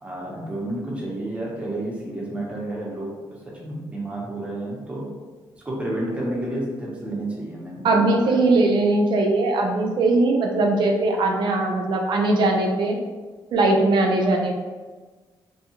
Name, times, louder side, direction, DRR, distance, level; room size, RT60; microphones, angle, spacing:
voice 1, 0.0-5.1 5.6-8.4, right 1 dB, 15° right, -4 dB, 0.8 m, -31 dB
voice 2, 7.8-13.0 13.5-14.6, right 2 dB, 65° right, 1 dB, 0.4 m, -20 dB
2.6 x 2.3 x 2.8 m, 1.4 s
cardioid pair, 125°, 9 cm